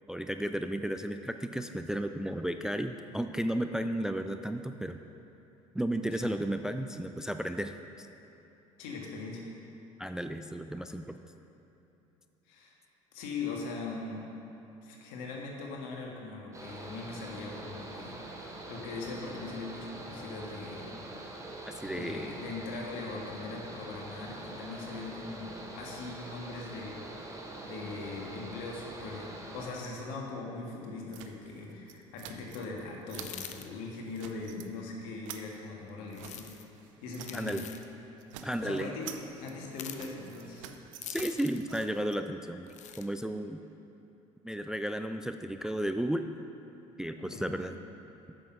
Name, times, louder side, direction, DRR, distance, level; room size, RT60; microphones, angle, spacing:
voice 1, 0.1-5.0 5.7-8.1 10.0-11.2 21.7-22.3 37.3-37.6 38.4-38.9 41.1-43.6 44.4-46.3 47.0-47.8, right 1 dB, 5° right, 8 dB, 0.3 m, -33 dB
voice 2, 8.8-9.5 12.5-12.8 13.1-14.3 14.8-20.9 21.8-36.5 37.0-37.6 38.6-39.1 39.4-40.7 47.2-47.6, left 3 dB, 65° left, -1 dB, 1.7 m, -41 dB
Mechanical fan, 16.5-29.7, right 2 dB, 20° right, 1.5 m, -44 dB
sound 1, 31.1-32.8 33.1-33.6 33.9-34.7 35.0-37.5 37.8-37.9 38.2-42.2, right 10 dB, 75° right, 0.6 m, -49 dB
sound 2, 33.1-33.7 36.1-36.6 37.2-37.8 39.7-40.1 41.0-41.6 42.7-43.1, left 10 dB, 45° left, 0.6 m, -44 dB
9.0 x 6.4 x 5.6 m, 2.9 s
hypercardioid pair, 65°, 16 cm